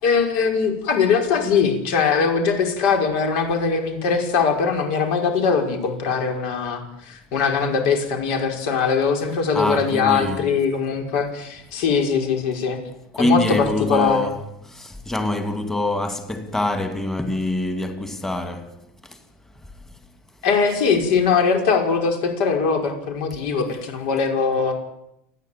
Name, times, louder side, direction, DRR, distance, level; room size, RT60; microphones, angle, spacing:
voice 1, 0.0-12.8 13.2-14.2 20.4-24.7, left 5 dB, 60° left, 5.5 m, -21 dB
voice 2, 9.5-10.5 13.1-18.7, left 2 dB, 5° left, 2.3 m, -25 dB
29.5 x 10.5 x 8.6 m
supercardioid pair, 145°, 6 cm